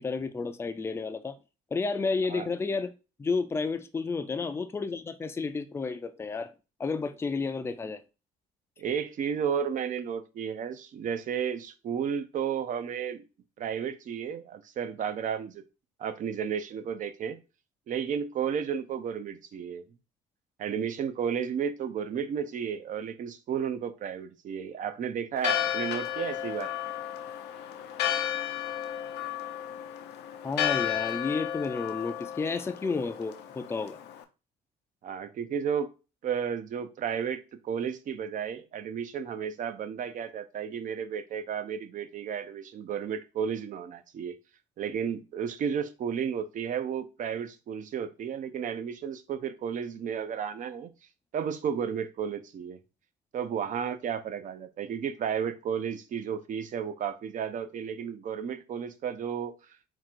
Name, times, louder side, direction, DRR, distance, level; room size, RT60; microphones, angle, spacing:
voice 1, 0.0-1.4 1.7-2.9 3.2-6.5 6.8-8.0 30.4-34.0, left 4 dB, 15° left, 0.4 m, -31 dB
voice 2, 8.8-13.2 13.6-15.6 16.0-17.4 17.9-19.8 20.6-26.7 35.0-35.9 36.2-44.4 44.8-50.9 51.3-52.8 53.3-59.5, right 7 dB, 50° right, 0.6 m, -33 dB
Church bell, 25.4-34.2, left 11 dB, 75° left, 0.6 m, -33 dB
3.8 x 2.4 x 4.5 m
cardioid pair, 110°, 17 cm